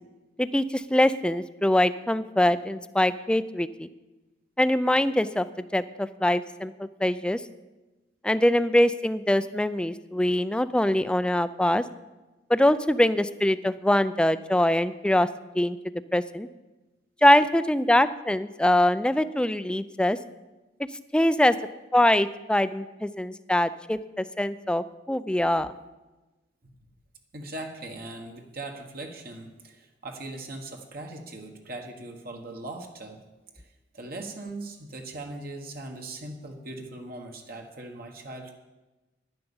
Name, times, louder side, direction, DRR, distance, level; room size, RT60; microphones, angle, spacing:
voice 1, 0.4-3.9 4.6-5.5 5.7-7.4 8.2-11.8 12.5-15.3 15.6-15.8 16.1-16.5 17.2-20.2 21.1-21.6 21.9-25.7, left 1 dB, 5° left, 14 dB, 0.4 m, -23 dB
voice 2, 27.3-33.2 33.6-38.5, right 2 dB, 55° right, 2 dB, 1.4 m, -40 dB
10.5 x 10.0 x 7.1 m, 1.1 s
head